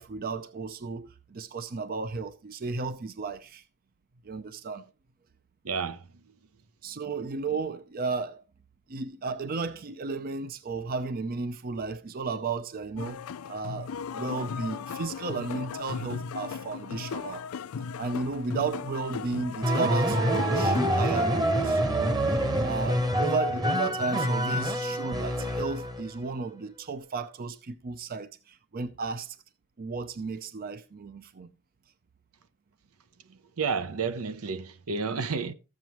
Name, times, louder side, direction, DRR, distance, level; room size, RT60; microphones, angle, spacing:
voice 1, 0.0-3.6 4.2-4.9 6.8-8.4 8.9-13.2 13.5-17.4 18.0-22.2 22.6-29.4 29.8-31.5, right 4 dB, 45° right, 0.5 m, -34 dB
voice 2, 5.6-6.0 33.6-35.5, right 5 dB, 80° right, 0.7 m, -30 dB
sound 1, 13.0-20.9, left 6 dB, 85° left, 0.4 m, -37 dB
sound 2, 19.6-26.1, equal, 20° right, 1.0 m, -26 dB
13.5 x 7.4 x 3.0 m
head